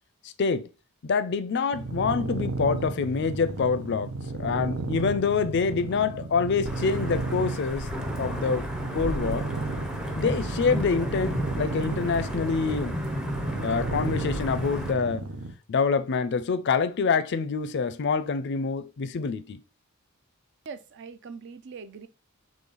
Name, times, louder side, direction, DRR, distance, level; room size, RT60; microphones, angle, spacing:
voice 1, 0.2-0.7 1.0-4.1 4.4-8.7 8.9-9.5 10.1-13.0 13.6-15.3 15.7-19.6, left 5 dB, 55° left, 0.4 m, -26 dB
sound 1, 1.7-15.5, right 3 dB, 80° right, 0.7 m, -34 dB
Wind / Thunder / Rain, 6.7-14.9, equal, 5° right, 0.5 m, -33 dB
voice 2, 20.7-22.1, right 5 dB, 55° right, 0.4 m, -42 dB
3.9 x 3.1 x 3.9 m
head